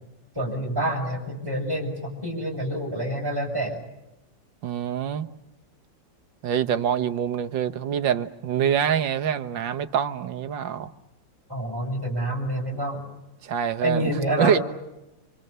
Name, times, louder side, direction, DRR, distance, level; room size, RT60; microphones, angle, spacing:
voice 1, 0.3-3.8 11.5-13.0 13.8-14.6, right 1 dB, 10° right, 7.5 m, -27 dB
voice 2, 4.6-5.3 6.4-10.9 13.4-14.0 14.4-14.6, right 8 dB, 85° right, 1.9 m, -25 dB
28.0 x 26.0 x 6.8 m
omnidirectional pair, 2.0 m